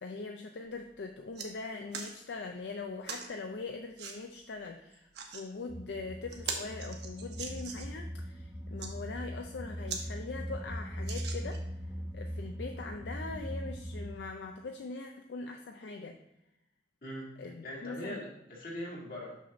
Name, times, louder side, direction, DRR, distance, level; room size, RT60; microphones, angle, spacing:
voice 1, 0.0-11.6 12.1-16.2 17.4-18.2, left 3 dB, 75° left, 4 dB, 0.5 m, -42 dB
sound 1, 0.7-0.8 1.1-1.5 1.9-2.1 3.0-3.3 4.0-4.2 4.9-5.4 5.9-6.0 6.3-8.0 8.6-8.9 9.5-9.6 9.9-10.0 10.4-10.5 11.0-11.7 12.4-12.5, right 5 dB, 70° right, 1.0 m, -41 dB
sound 2, 5.7-14.1, equal, 15° right, 0.9 m, -40 dB
voice 2, 17.0-17.3 17.6-19.4, left 1 dB, 55° left, -3 dB, 1.9 m, -41 dB
6.1 x 4.1 x 5.7 m, 0.85 s
head